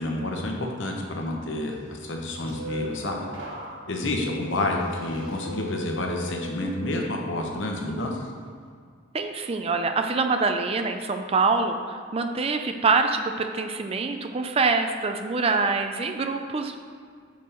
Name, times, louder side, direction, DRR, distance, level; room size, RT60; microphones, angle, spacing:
voice 1, 0.0-3.2 3.9-8.3, left 1 dB, 65° left, 1 dB, 1.0 m, -29 dB
sound 1, 2.0-7.1 7.5-7.9, left 1 dB, 70° right, 1.4 m, -39 dB
voice 2, 9.1-16.7, right 4 dB, 30° right, 6 dB, 0.4 m, -25 dB
7.0 x 5.3 x 4.4 m, 2.1 s
head